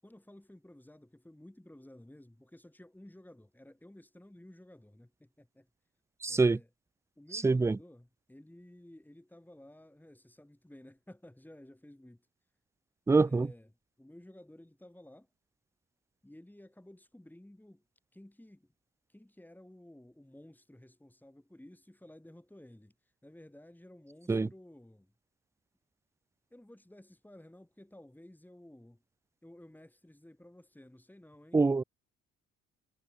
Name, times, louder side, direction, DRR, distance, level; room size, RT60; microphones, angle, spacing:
voice 1, 0.0-5.7 6.3-6.7 7.2-12.3 13.2-13.7 14.0-15.3 16.2-17.8 18.1-18.7 19.1-22.9 23.2-25.1 26.5-29.0 29.4-31.6, left 1 dB, 5° left, 7.7 m, -54 dB
voice 2, 6.2-6.6 7.3-7.8 13.1-13.5 24.3-24.5 31.5-31.8, right 3 dB, 10° right, 0.3 m, -25 dB
cardioid pair, 90°, 30 cm